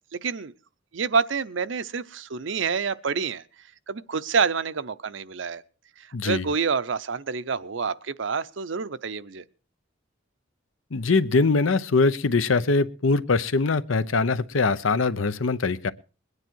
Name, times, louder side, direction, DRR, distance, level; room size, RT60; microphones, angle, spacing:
voice 1, 0.1-0.5 0.9-3.4 3.9-5.6 6.0-9.4, right 5 dB, 65° right, 15 dB, 0.7 m, -27 dB
voice 2, 6.1-6.5 10.9-15.9, left 3 dB, 80° left, 15 dB, 0.8 m, -22 dB
21.5 x 9.7 x 4.6 m, 0.36 s
head